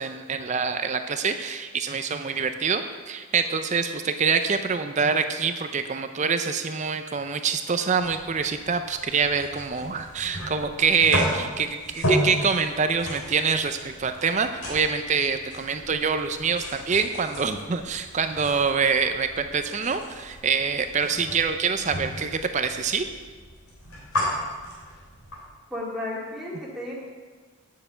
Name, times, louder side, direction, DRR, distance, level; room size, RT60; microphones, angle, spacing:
voice 1, 0.0-23.1, right 5 dB, 35° right, 8 dB, 0.5 m, -25 dB
sound 1, 8.0-25.4, equal, 80° left, 3.3 m, -34 dB
voice 2, 25.7-26.9, left 1 dB, ahead, -6 dB, 2.3 m, -33 dB
7.8 x 6.6 x 8.2 m, 1.4 s
head